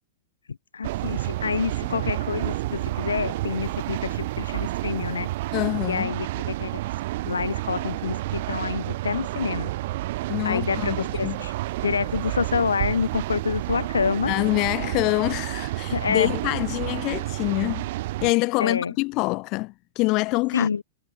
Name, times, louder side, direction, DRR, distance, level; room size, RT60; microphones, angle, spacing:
voice 1, 0.5-5.3 5.8-6.8 7.2-9.7 10.4-11.5 11.8-14.3 15.9-16.3 18.6-18.9 20.5-20.8, left 5 dB, 75° left, 2.6 m, -27 dB
sound 1, 0.8-18.3, right 17 dB, 50° right, 1.4 m, -30 dB
voice 2, 5.5-6.1 10.3-11.4 14.3-17.9 18.2-20.7, left 24 dB, 40° left, 1.0 m, -25 dB
figure-of-eight pair, 100°, 0 cm